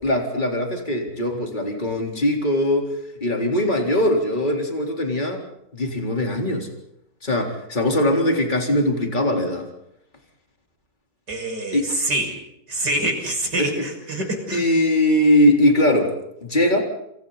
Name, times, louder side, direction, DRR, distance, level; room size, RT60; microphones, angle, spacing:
voice 1, 0.0-2.9 3.2-5.4 5.7-6.7 7.2-9.7 11.7-11.9 13.6-13.9 14.5-16.1 16.4-16.8, left 1 dB, 25° left, 2 dB, 4.1 m, -21 dB
voice 2, 11.3-12.3 12.7-14.6, right 1 dB, 70° right, 2 dB, 6.8 m, -26 dB
28.0 x 27.5 x 4.1 m, 0.77 s
omnidirectional pair, 1.9 m